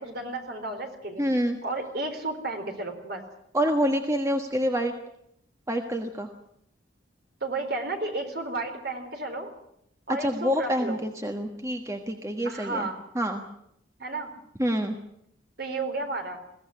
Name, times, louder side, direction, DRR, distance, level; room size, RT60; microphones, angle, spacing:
voice 1, 0.0-1.2 1.6-3.2 7.4-9.5 10.1-11.0 12.4-13.0 14.0-14.3 15.6-16.4, right 2 dB, 50° right, 5 dB, 4.0 m, -32 dB
voice 2, 1.2-1.6 3.5-4.9 5.7-6.3 10.2-12.9 13.1-13.4 14.6-15.0, equal, 15° right, 4 dB, 1.4 m, -27 dB
22.0 x 16.0 x 10.0 m, 0.75 s
head